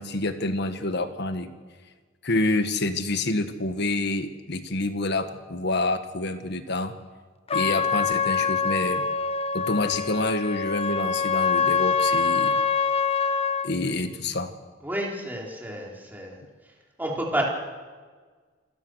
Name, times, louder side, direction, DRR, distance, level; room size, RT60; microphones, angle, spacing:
voice 1, 0.0-1.5 2.2-6.9 7.5-9.0 9.5-12.5 13.6-14.5, left 2 dB, 60° left, 9 dB, 1.6 m, -27 dB
Trumpet, 7.5-13.7, left 5 dB, 30° left, 0.9 m, -25 dB
voice 2, 14.8-16.4 17.0-17.4, right 1 dB, 10° right, -2 dB, 4.1 m, -30 dB
27.0 x 16.0 x 6.5 m, 1.5 s
head